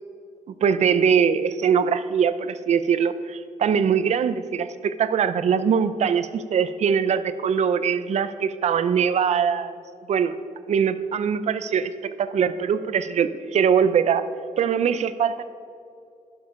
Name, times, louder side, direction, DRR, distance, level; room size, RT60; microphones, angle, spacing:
voice 1, 0.6-9.8 10.1-10.3 10.7-14.2 14.6-15.4, right 7 dB, 55° right, 12 dB, 0.6 m, -22 dB
12.0 x 12.0 x 5.2 m, 2.4 s
wide cardioid pair, 165°, 14 cm